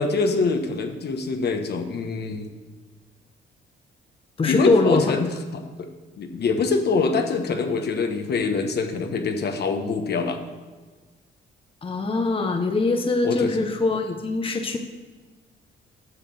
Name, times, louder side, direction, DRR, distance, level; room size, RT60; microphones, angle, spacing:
voice 1, 0.0-2.5 4.4-5.9 6.2-10.4 13.2-13.6, left 4 dB, 55° left, 5 dB, 1.1 m, -24 dB
voice 2, 4.4-5.0 11.8-14.8, left 3 dB, 25° left, 5 dB, 0.9 m, -22 dB
8.0 x 5.9 x 7.0 m, 1.4 s
cardioid pair, 90°, 20 cm